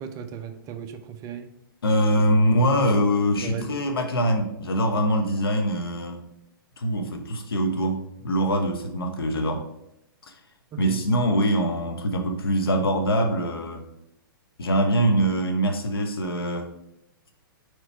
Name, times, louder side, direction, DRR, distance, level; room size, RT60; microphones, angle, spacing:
voice 1, 0.0-1.5 2.7-2.9 3.4-3.7 10.7-11.0, right 7 dB, 30° right, 0.6 m, -36 dB
voice 2, 1.8-6.2 6.8-9.6 10.2-10.4 10.8-13.8 14.6-16.7, equal, 85° left, 1.1 m, -23 dB
4.8 x 4.6 x 4.5 m
hypercardioid pair, 125°, 12 cm